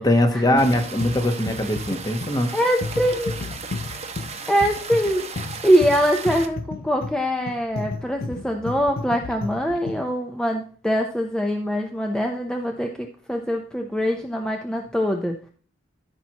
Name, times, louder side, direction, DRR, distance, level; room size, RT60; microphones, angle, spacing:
voice 1, 0.0-2.5, left 1 dB, 20° left, 1.2 m, -21 dB
sound 1, 0.6-10.1, left 3 dB, 55° left, 0.5 m, -33 dB
sound 2, 0.6-6.5, right 5 dB, 35° right, 1.0 m, -36 dB
voice 2, 2.5-3.3 4.5-5.3 5.6-15.4, equal, 5° left, 0.7 m, -23 dB
13.5 x 5.9 x 3.0 m
head